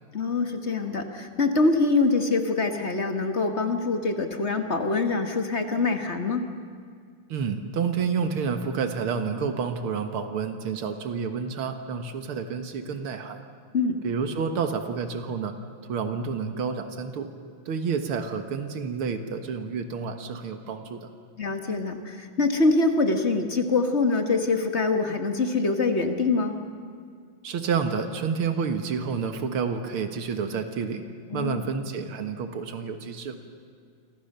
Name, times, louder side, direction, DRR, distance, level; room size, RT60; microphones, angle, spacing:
voice 1, 0.1-6.5 13.7-14.0 21.4-26.5 31.3-31.7, left 3 dB, 35° left, 5 dB, 1.8 m, -24 dB
voice 2, 7.3-13.4 14.0-15.5 15.9-17.3 17.7-21.1 27.4-31.0 31.3-33.4, right 6 dB, 90° right, 7 dB, 2.4 m, -29 dB
29.5 x 25.5 x 6.8 m, 2.1 s
omnidirectional pair, 2.3 m